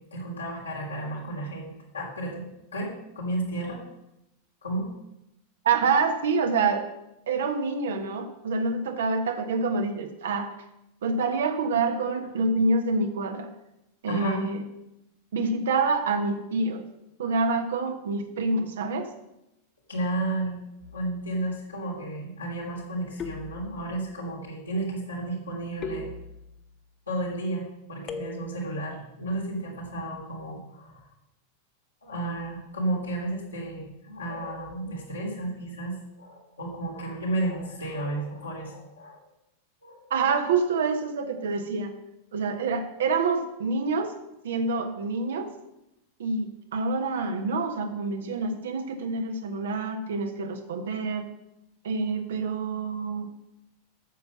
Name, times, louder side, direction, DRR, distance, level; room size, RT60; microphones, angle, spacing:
voice 1, 0.0-2.4 2.7-3.8 4.6-4.9 14.1-14.4 19.9-20.6 20.9-26.1 27.1-31.1 32.0-39.2 39.8-40.0, right 1 dB, 80° left, -4 dB, 3.4 m, -32 dB
voice 2, 5.6-6.8 7.3-10.5 11.0-13.5 14.0-14.7 15.3-16.9 17.2-19.1 40.1-42.0 42.3-44.2 44.4-45.5 46.2-51.3 51.8-53.3, right 4 dB, 60° right, 6 dB, 1.3 m, -27 dB
sound 1, 20.8-21.3 23.2-24.1 25.8-26.8 28.1-28.8, left 3 dB, 30° left, 1.0 m, -39 dB
9.2 x 7.0 x 6.9 m, 0.88 s
figure-of-eight pair, 90°, 0 cm